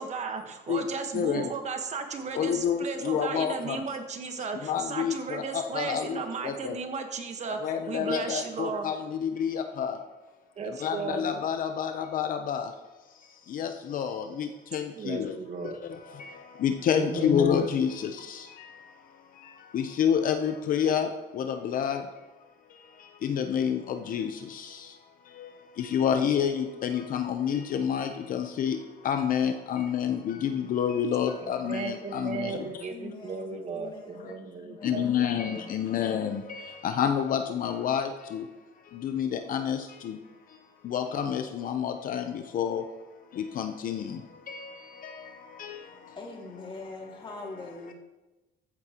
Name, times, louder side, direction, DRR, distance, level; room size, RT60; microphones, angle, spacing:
voice 1, 0.0-7.6 7.9-8.9 10.6-11.3 15.0-15.8 16.9-17.4 31.4-35.6, right 5 dB, 45° right, 5 dB, 1.3 m, -35 dB
voice 2, 1.1-1.5 2.3-3.9 4.6-6.8 7.6-10.0 10.6-12.8 13.1-22.3 22.7-32.8 34.2-34.4 34.8-46.2 47.0-47.1 47.4-47.6 47.9-48.0, left 8 dB, 55° left, 7 dB, 0.7 m, -30 dB
voice 3, 32.9-35.2 46.2-47.9, left 3 dB, 30° left, 0 dB, 2.3 m, -43 dB
14.5 x 8.5 x 3.0 m, 1.1 s
cardioid pair, 110°, 17 cm